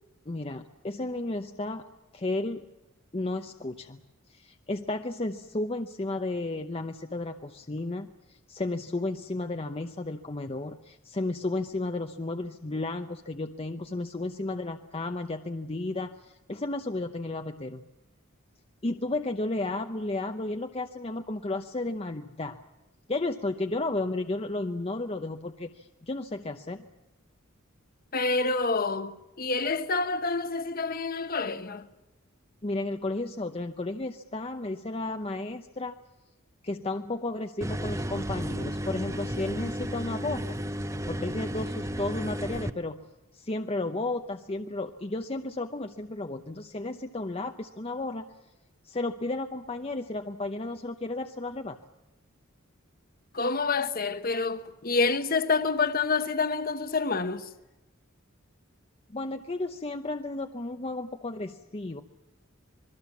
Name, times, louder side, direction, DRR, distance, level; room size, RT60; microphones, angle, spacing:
voice 1, 0.3-1.8 2.1-2.6 3.1-4.0 4.3-17.8 18.8-22.6 23.1-26.9 32.6-35.9 36.6-40.6 41.1-43.1 43.3-48.3 48.8-51.8 59.1-62.0, left 2 dB, 30° left, 0.8 m, -33 dB
voice 2, 28.1-31.9 53.3-57.5, left 4 dB, 45° left, 1.2 m, -28 dB
sound 1, 37.6-42.7, equal, 15° right, 0.7 m, -33 dB
26.5 x 21.0 x 7.3 m
head